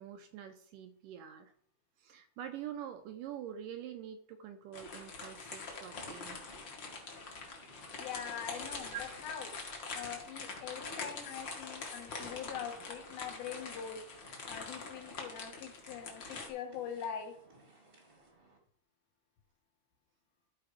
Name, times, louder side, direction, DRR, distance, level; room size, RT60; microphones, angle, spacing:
voice 1, 0.0-1.5 2.0-6.4 8.8-9.1, right 9 dB, 80° right, 8 dB, 1.9 m, -45 dB
sound 1, 4.7-16.5, left 4 dB, 45° left, 1.5 m, -44 dB
sound 2, 6.0-18.6, right 2 dB, 30° right, 1.0 m, -61 dB
voice 2, 8.0-8.9 9.2-9.5 9.9-14.0 14.5-17.4, left 8 dB, 75° left, 4 dB, 3.2 m, -43 dB
13.5 x 4.6 x 4.9 m, 0.64 s
omnidirectional pair, 4.4 m